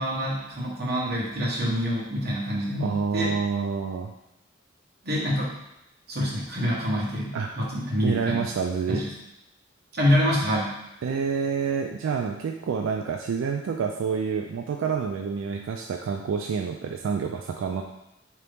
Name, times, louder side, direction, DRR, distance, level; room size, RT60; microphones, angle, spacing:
voice 1, 0.0-3.3 5.0-5.5 6.1-8.5 8.9-9.1 9.9-10.7, equal, 55° right, -4 dB, 1.1 m, -26 dB
voice 2, 2.8-4.1 7.3-7.5 8.0-9.0 11.0-17.8, right 6 dB, 90° right, 3 dB, 0.3 m, -28 dB
3.8 x 2.9 x 3.4 m, 0.89 s
head